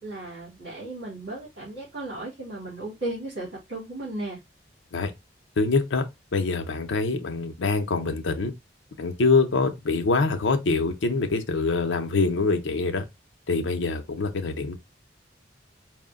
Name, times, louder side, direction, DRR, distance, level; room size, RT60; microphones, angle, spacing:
voice 1, 0.0-4.4, right 2 dB, 65° right, 2.5 m, -35 dB
voice 2, 5.6-6.0 6.3-8.5 9.0-13.0 13.5-14.8, left 3 dB, 85° left, 0.6 m, -24 dB
4.7 x 2.1 x 3.6 m
head